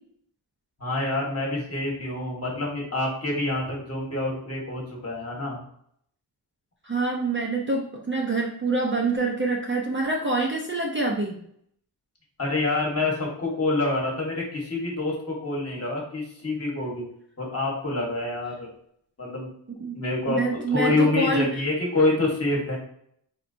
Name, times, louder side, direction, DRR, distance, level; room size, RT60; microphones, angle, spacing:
voice 1, 0.8-5.6 12.4-17.0 17.4-18.7 19.2-19.5 19.9-22.8, left 2 dB, 35° left, -2 dB, 1.2 m, -27 dB
voice 2, 6.8-11.4 19.8-20.0 20.4-21.5, right 2 dB, 30° right, -1 dB, 0.5 m, -26 dB
4.4 x 3.1 x 2.6 m, 0.68 s
wide cardioid pair, 150°, 43 cm